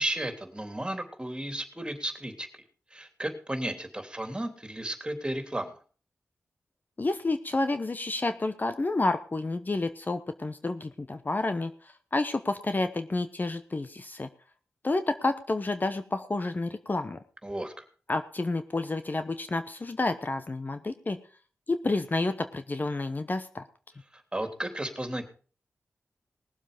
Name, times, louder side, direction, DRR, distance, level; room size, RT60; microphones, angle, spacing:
voice 1, 0.0-2.6 2.9-5.7 17.4-17.8 24.1-25.3, right 1 dB, 20° right, 6 dB, 3.2 m, -34 dB
voice 2, 7.0-14.3 14.8-17.2 18.1-21.2 21.7-23.6, left 2 dB, 40° left, 10 dB, 1.0 m, -30 dB
19.5 x 7.4 x 5.1 m, 0.39 s
cardioid pair, 50°, 5 cm